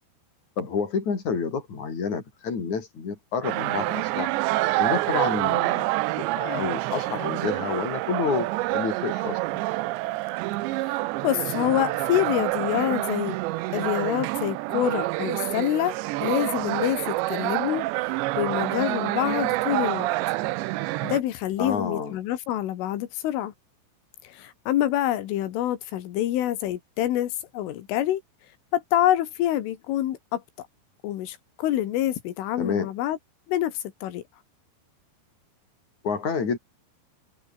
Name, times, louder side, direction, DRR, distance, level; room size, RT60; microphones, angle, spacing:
voice 1, 0.6-4.3 4.8-5.9 6.2-9.6 21.6-22.2 32.6-32.9 36.0-36.6, left 5 dB, 40° left, 6.1 m, -29 dB
sound 1, 3.4-21.2, right 19 dB, 80° right, 2.7 m, -27 dB
voice 2, 11.2-13.4 13.7-20.1 21.0-23.5 24.2-28.2 28.7-30.7 31.0-33.2 33.5-34.2, left 13 dB, 85° left, 4.4 m, -26 dB
omnidirectional pair, 5.6 m